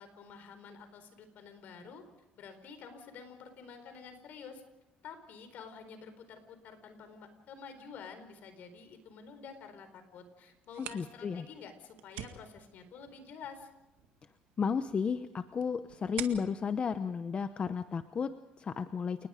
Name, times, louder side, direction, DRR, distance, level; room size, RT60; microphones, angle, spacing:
voice 1, 0.0-2.0 2.4-4.6 5.0-13.7, left 6 dB, 65° left, 9 dB, 4.3 m, -49 dB
sound 1, 10.5-18.1, right 12 dB, 85° right, 1.9 m, -49 dB
voice 2, 10.8-11.4 14.6-19.3, left 6 dB, 35° left, 11 dB, 0.9 m, -33 dB
29.5 x 20.0 x 5.1 m, 1.0 s
cardioid pair, 100°, 3 cm